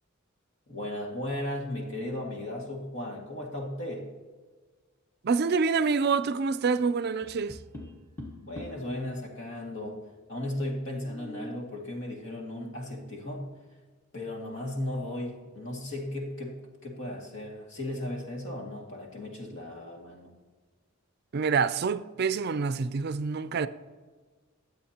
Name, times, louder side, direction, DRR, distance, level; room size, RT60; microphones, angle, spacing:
voice 1, 0.7-4.1 8.4-10.0 10.3-13.5 14.1-20.3, left 1 dB, 60° left, 2.1 m, -36 dB
voice 2, 5.2-7.6 21.3-23.7, right 5 dB, 50° right, 0.4 m, -27 dB
Tap, 7.2-8.9 10.9-11.7, equal, 10° left, 1.4 m, -43 dB
22.0 x 7.9 x 2.9 m
head